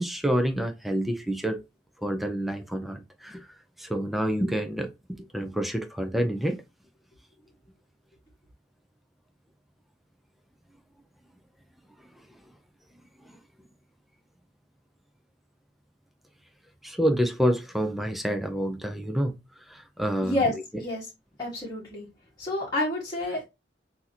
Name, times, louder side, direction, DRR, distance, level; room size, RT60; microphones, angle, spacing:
voice 1, 0.0-1.6 2.0-6.6 12.0-12.1 13.2-13.4 16.8-20.4, equal, ahead, 0.6 m, -28 dB
voice 2, 20.2-21.0 21.4-22.1 22.4-23.4, left 2 dB, 20° left, 1.5 m, -29 dB
6.1 x 2.8 x 2.8 m
head